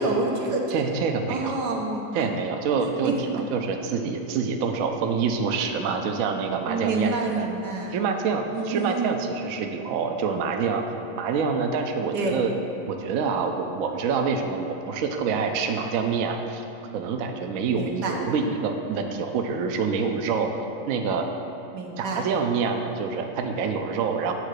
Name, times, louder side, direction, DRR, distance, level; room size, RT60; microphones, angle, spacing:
voice 1, 0.0-0.8 1.3-2.3 3.0-3.1 6.6-8.0 8.5-9.2 12.1-12.4 17.7-18.2 21.7-22.3, right 3 dB, 85° right, -1 dB, 1.6 m, -28 dB
voice 2, 0.7-1.6 2.1-7.4 7.9-10.8 11.2-12.5 12.9-16.6 16.9-20.5 20.9-21.3 22.0-24.3, right 5 dB, 65° right, 4 dB, 0.9 m, -26 dB
8.9 x 3.8 x 6.5 m, 2.9 s
omnidirectional pair, 1.8 m